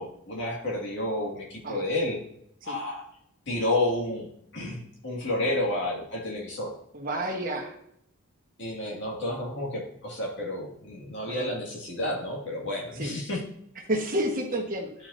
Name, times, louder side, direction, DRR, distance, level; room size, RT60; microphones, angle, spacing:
voice 1, 0.0-2.2 2.6-3.0 3.5-4.3 4.5-6.7 8.6-13.4, left 1 dB, 55° left, -3 dB, 2.1 m, -30 dB
voice 2, 6.9-7.7 11.2-11.5 12.9-13.1 13.9-14.9, right 1 dB, 40° right, 0 dB, 1.3 m, -30 dB
11.0 x 4.8 x 2.7 m, 0.73 s
head